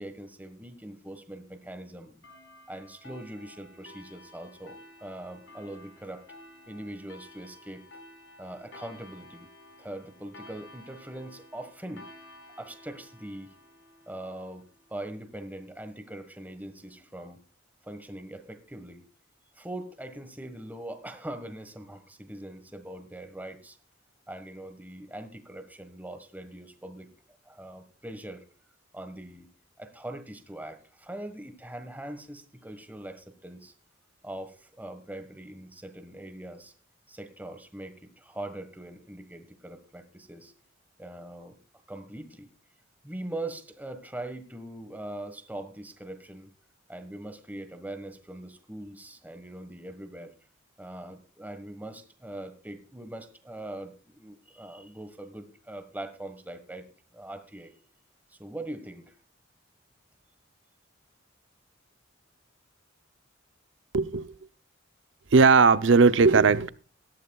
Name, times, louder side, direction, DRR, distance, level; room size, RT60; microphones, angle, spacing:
voice 1, 0.0-2.2 2.7-6.3 6.7-7.8 8.4-9.5 9.8-12.1 12.6-13.5 14.1-14.6 14.9-17.4 17.8-19.0 19.5-23.8 24.3-27.1 27.4-28.4 28.9-29.5 29.8-33.7 34.2-36.7 37.1-40.5 41.0-41.6 41.9-42.5 43.0-46.5 46.9-50.3 50.8-56.9 57.1-57.7 58.3-59.1, right 1 dB, 10° right, 1.4 m, -41 dB
sound 1, 2.2-15.3, left 1 dB, 65° left, 4.6 m, -52 dB
voice 2, 63.9-64.3 65.3-66.7, right 4 dB, 65° right, 0.6 m, -18 dB
18.0 x 12.5 x 2.3 m
head